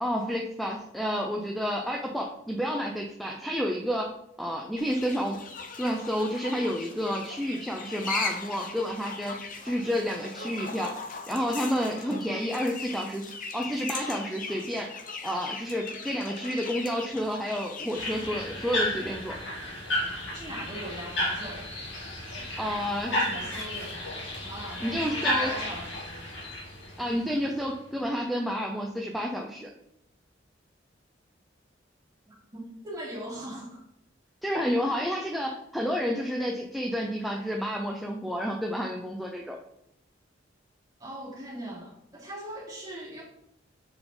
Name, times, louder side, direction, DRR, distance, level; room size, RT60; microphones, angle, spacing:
voice 1, 0.0-4.1 4.4-5.4 5.8-9.4 9.6-10.9 11.3-14.9 15.2-19.3 22.6-23.2 24.8-25.5 27.0-29.7 34.4-39.6, equal, ahead, 0 dB, 0.6 m, -30 dB
sound 1, 4.8-18.3, left 4 dB, 45° left, 0.9 m, -39 dB
sound 2, 17.9-27.7, left 1 dB, 70° left, 2.7 m, -33 dB
voice 2, 20.3-21.7 22.3-22.6 23.0-24.1 24.4-26.3 32.3-33.8 41.0-43.2, right 1 dB, 20° right, -6 dB, 3.1 m, -40 dB
7.0 x 5.4 x 4.0 m, 0.77 s
head